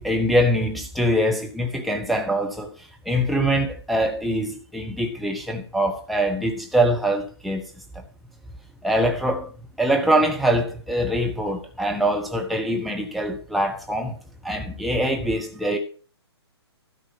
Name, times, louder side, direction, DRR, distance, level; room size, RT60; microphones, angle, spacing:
voice 1, 0.0-2.7 3.1-7.6 8.8-9.5 9.8-14.2 14.4-15.8, equal, ahead, 1.0 m, -23 dB
12.5 x 5.1 x 7.1 m
figure-of-eight pair, 125°, 14 cm